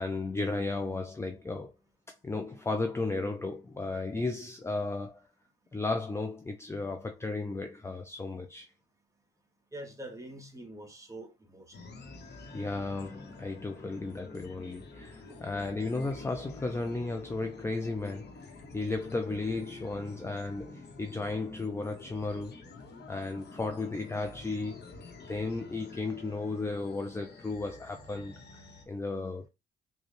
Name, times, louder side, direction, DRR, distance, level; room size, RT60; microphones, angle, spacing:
voice 1, 0.0-1.7 2.2-5.2 5.7-8.7 12.5-18.4 18.7-22.6 23.1-24.8 25.2-29.5, left 3 dB, 15° left, 0.4 m, -34 dB
voice 2, 9.7-11.6 15.3-15.4, right 1 dB, 15° right, 1.2 m, -45 dB
sound 1, 11.7-28.9, left 3 dB, 60° left, 1.0 m, -49 dB
4.0 x 2.3 x 3.2 m
cardioid pair, 90°, 20 cm